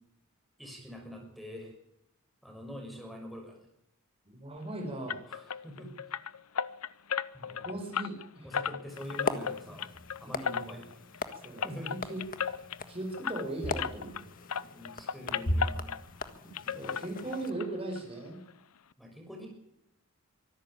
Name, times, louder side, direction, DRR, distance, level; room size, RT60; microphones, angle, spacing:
voice 1, 0.6-1.7 2.4-3.6 5.3-5.9 7.3-7.7 8.4-9.9 10.2-11.3 11.6-11.9 14.0-14.3 14.7-16.0 16.4-16.8 19.0-19.5, equal, ahead, 2 dB, 6.3 m, -45 dB
voice 2, 4.3-5.2 7.6-8.5 9.7-9.8 10.2-10.8 11.4-12.2 12.9-14.1 16.7-18.4, right 2 dB, 25° right, 2 dB, 5.5 m, -38 dB
sound 1, 5.1-14.2 14.5-16.3 16.5-17.7 17.9-18.0 18.5-18.6 18.9-19.0, left 7 dB, 80° left, 0.7 m, -36 dB
sound 2, 8.9-17.5, left 2 dB, 40° left, 1.6 m, -38 dB
24.5 x 13.0 x 8.8 m, 0.81 s
head